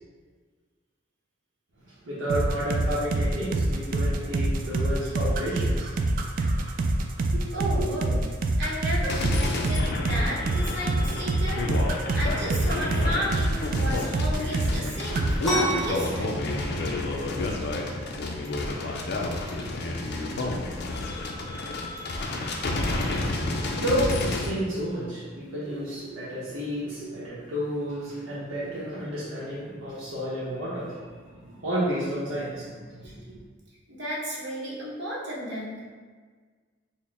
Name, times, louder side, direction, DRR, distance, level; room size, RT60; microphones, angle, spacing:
voice 1, 2.0-5.9 7.3-7.4 7.8-7.9 22.5-22.7 23.8-31.0 31.3-33.4, equal, 80° right, -9 dB, 0.8 m, -31 dB
sound 1, 2.3-14.9 15.2-15.4, right 2 dB, 45° right, 0.3 m, -25 dB
voice 2, 7.5-8.2 8.6-16.4 33.0-33.1 33.9-35.8, equal, 65° right, -7 dB, 1.1 m, -33 dB
sound 2, 9.1-24.5, left 2 dB, 55° left, 0.4 m, -30 dB
sound 3, 15.4-22.8, right 1 dB, ahead, 0.8 m, -35 dB
4.1 x 2.1 x 3.4 m, 1.5 s
head